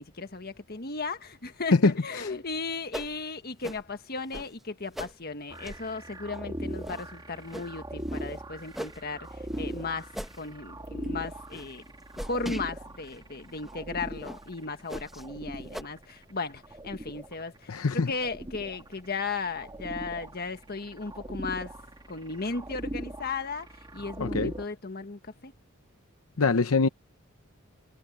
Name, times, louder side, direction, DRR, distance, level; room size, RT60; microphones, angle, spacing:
voice 1, 0.0-11.8 12.3-21.7 22.1-23.7 23.9-25.5, left 4 dB, 45° left, 1.6 m, -36 dB
sound 1, 2.9-3.2 3.6-3.8 4.3-4.5 5.0-5.1 5.6-5.9 6.3-6.4 6.8-7.0 7.5-7.7 8.1-8.3 8.7-9.0 9.5-9.7 10.1-10.4 10.9-11.1 11.5-11.7 12.1-12.7 13.1-13.2 13.6-13.7 14.2-14.4 14.9-15.2 15.7-15.8, equal, ahead, 1.0 m, -39 dB
sound 2, 5.5-24.7, right 1 dB, 20° right, 1.8 m, -40 dB
voice 2, 17.7-18.1 24.2-24.5 26.4-26.9, left 3 dB, 80° left, 0.8 m, -23 dB
head